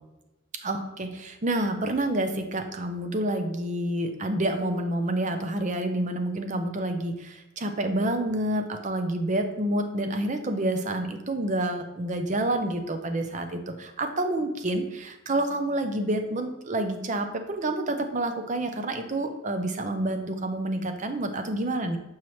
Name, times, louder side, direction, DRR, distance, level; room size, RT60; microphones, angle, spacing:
voice 1, 0.6-22.0, right 1 dB, 35° right, 6 dB, 0.5 m, -28 dB
7.0 x 4.6 x 3.1 m, 0.98 s
head